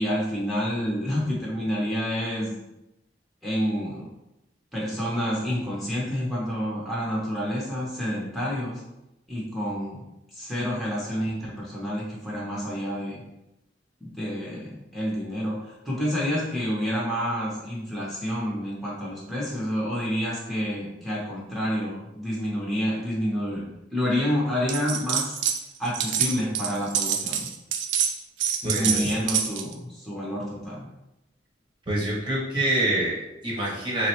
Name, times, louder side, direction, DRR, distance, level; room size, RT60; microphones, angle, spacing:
voice 1, 0.0-2.6 3.4-4.0 4.7-8.8 9.3-10.0 10.3-13.2 14.0-23.6 23.9-25.4 25.8-27.5 28.6-30.9, equal, ahead, -7 dB, 0.6 m, -28 dB
sound 1, 24.7-25.6 25.8-29.7, right 8 dB, 75° right, 0.3 m, -26 dB
voice 2, 28.6-29.1 31.9-34.1, right 1 dB, 25° right, -5 dB, 0.9 m, -26 dB
3.6 x 2.0 x 2.9 m, 0.91 s
head